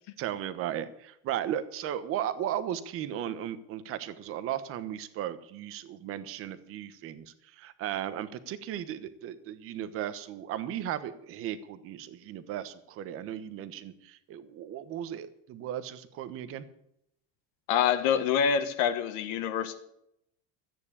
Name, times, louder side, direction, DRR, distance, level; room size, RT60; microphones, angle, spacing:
voice 1, 0.2-16.6, right 11 dB, 35° right, 13 dB, 1.1 m, -36 dB
voice 2, 17.7-19.8, left 8 dB, 55° left, 8 dB, 1.4 m, -26 dB
14.0 x 9.3 x 8.5 m, 0.76 s
cardioid pair, 170°, 38 cm